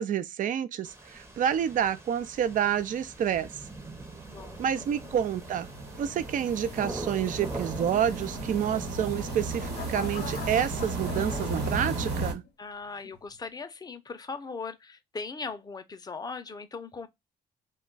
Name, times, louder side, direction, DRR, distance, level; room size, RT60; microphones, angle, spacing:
voice 1, 0.0-3.5 4.6-5.7 6.0-12.4, right 9 dB, 50° right, 0.4 m, -28 dB
sound 1, 0.8-11.9, right 2 dB, 15° right, 0.7 m, -44 dB
sound 2, 3.6-12.3, right 2 dB, 80° right, 1.1 m, -35 dB
voice 2, 4.3-5.1 12.6-17.1, left 4 dB, 25° left, 0.5 m, -39 dB
sound 3, 9.1-12.5 13.0-13.4, left 7 dB, 85° left, 0.6 m, -44 dB
2.2 x 2.2 x 3.8 m
cardioid pair, 85°, 17 cm